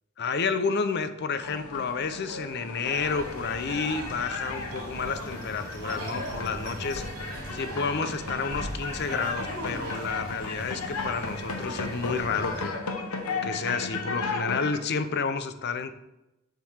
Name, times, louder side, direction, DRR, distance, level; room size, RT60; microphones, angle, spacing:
voice 1, 0.2-7.0 7.5-12.8 13.4-15.9, left 5 dB, 50° left, 11 dB, 0.5 m, -30 dB
sound 1, 1.4-14.8, left 3 dB, 90° left, 1.0 m, -35 dB
sound 2, 2.9-12.7, right 1 dB, 85° right, 2.7 m, -39 dB
7.1 x 3.8 x 6.4 m, 0.92 s
head